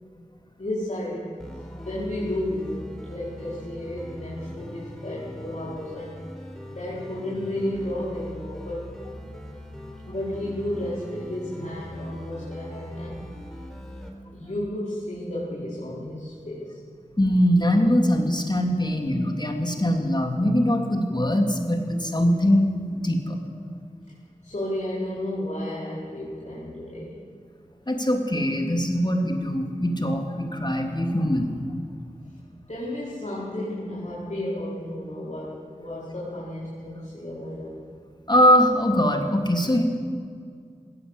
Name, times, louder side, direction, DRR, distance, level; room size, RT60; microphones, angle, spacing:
voice 1, 0.6-1.3 1.8-6.2 6.7-8.9 10.1-13.3 14.3-16.8 24.4-27.2 32.7-37.8, left 1 dB, 65° left, -7 dB, 4.8 m, -32 dB
sound 1, 1.4-14.1, equal, 5° left, 4.4 m, -41 dB
voice 2, 17.2-23.4 27.9-31.5 38.3-39.8, equal, 35° left, 3 dB, 3.1 m, -22 dB
19.5 x 18.0 x 8.3 m, 2.1 s
wide cardioid pair, 50°, 13 cm